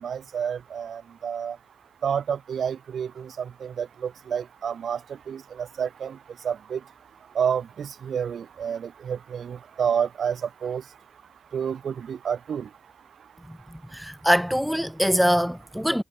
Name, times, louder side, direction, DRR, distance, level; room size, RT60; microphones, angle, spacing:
voice 1, 0.0-1.6 2.0-5.0 5.3-6.2 6.4-6.8 7.3-10.8 11.5-12.7, right 7 dB, 80° right, 1.7 m, -29 dB
voice 2, 13.9-16.0, equal, ahead, 0.4 m, -23 dB
supercardioid pair, 45°, 0 cm